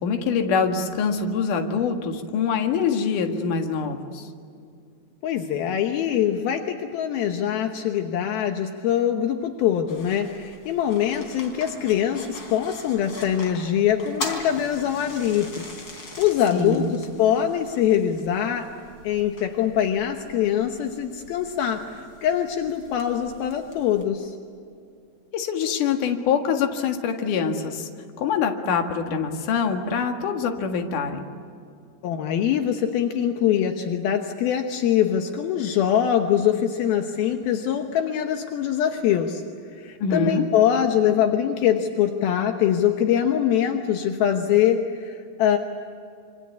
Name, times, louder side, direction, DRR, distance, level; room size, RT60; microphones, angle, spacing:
voice 1, 0.0-4.3 16.5-17.0 25.3-27.9 28.2-31.2 40.0-40.5, left 6 dB, 60° left, 4 dB, 3.1 m, -24 dB
voice 2, 5.2-15.7 16.2-18.7 19.0-24.3 32.0-39.4 39.7-45.6, left 9 dB, 75° left, 5 dB, 2.9 m, -23 dB
sound 1, 9.9-24.0, left 2 dB, 30° left, 4.2 m, -41 dB
27.5 x 26.0 x 8.3 m, 2.4 s
omnidirectional pair, 4.4 m